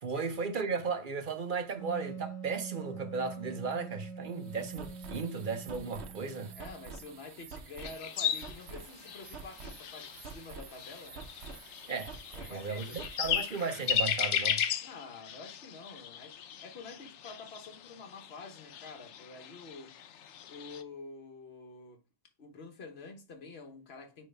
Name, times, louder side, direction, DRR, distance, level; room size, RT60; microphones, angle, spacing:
voice 1, 0.0-6.5 11.9-12.2 12.5-14.6, right 5 dB, 50° right, 0.9 m, -35 dB
Wind instrument woodwind instrument, 1.8-7.1, right 6 dB, 25° left, 1.5 m, -45 dB
sound 1, 4.2-14.0, right 4 dB, 70° right, 1.1 m, -48 dB
voice 2, 6.5-11.3 12.3-13.0 14.8-22.0 22.4-24.3, left 3 dB, 65° left, 1.4 m, -48 dB
sound 2, 7.8-20.8, left 9 dB, 85° left, 0.9 m, -36 dB
9.0 x 3.2 x 3.4 m
omnidirectional pair, 1.2 m